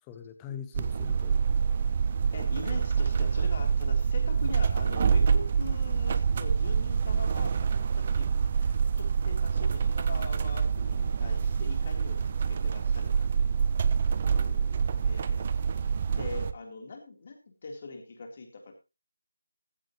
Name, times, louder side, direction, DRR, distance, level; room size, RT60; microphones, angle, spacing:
voice 1, 0.1-1.4 2.7-2.8 14.2-15.0, left 8 dB, 10° left, 1.1 m, -44 dB
sound 1, 0.7-16.5, right 6 dB, 30° right, 0.7 m, -26 dB
voice 2, 2.3-13.9 15.0-15.5 16.2-18.8, left 3 dB, 35° left, 3.7 m, -42 dB
15.0 x 12.5 x 3.1 m
figure-of-eight pair, 160°, 0 cm